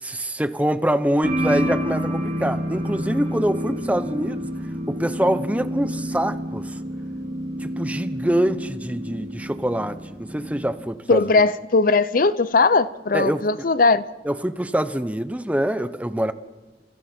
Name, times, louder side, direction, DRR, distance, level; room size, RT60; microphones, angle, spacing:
voice 1, 0.0-4.5 4.9-6.8 7.6-11.3 13.1-13.4 14.2-16.3, right 1 dB, 10° right, 0.8 m, -24 dB
sound 1, 1.2-10.7, equal, 45° right, 6.1 m, -29 dB
voice 2, 11.1-14.0, left 3 dB, 50° left, 0.7 m, -19 dB
29.0 x 28.5 x 4.5 m
head